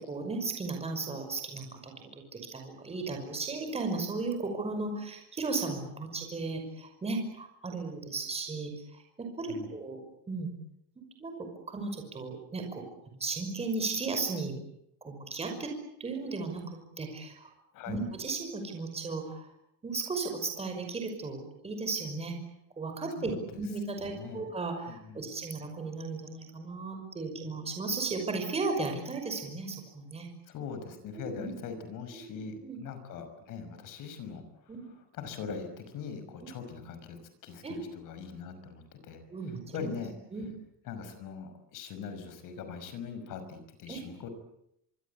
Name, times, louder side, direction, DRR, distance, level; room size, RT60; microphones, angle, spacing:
voice 1, 0.1-10.0 10.3-10.5 11.2-12.8 13.1-14.6 15.0-15.7 16.0-17.5 17.9-19.5 19.8-22.3 22.8-30.3 31.1-31.5 32.1-32.4 32.6-32.8 34.7-34.9 37.6-37.8 39.3-39.9 40.3-40.5 43.9-44.0, right 3 dB, 15° right, 4 dB, 5.8 m, -35 dB
voice 2, 23.2-23.6 24.0-24.5 24.9-25.2 30.5-40.1 40.8-44.3, left 6 dB, 45° left, 9 dB, 5.7 m, -42 dB
25.5 x 25.0 x 8.5 m, 0.76 s
cardioid pair, 170°, 43 cm